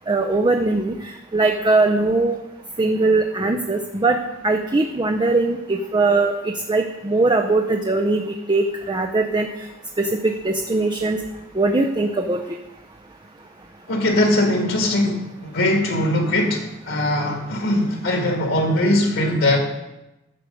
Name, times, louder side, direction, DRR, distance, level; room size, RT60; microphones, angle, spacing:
voice 1, 0.1-2.4 2.8-4.2 4.4-6.3 6.7-9.5 10.0-11.2 11.6-12.4, right 3 dB, 20° right, 4 dB, 0.6 m, -20 dB
voice 2, 13.9-19.6, left 1 dB, 70° left, 2 dB, 1.7 m, -20 dB
14.0 x 6.4 x 5.2 m, 0.97 s
head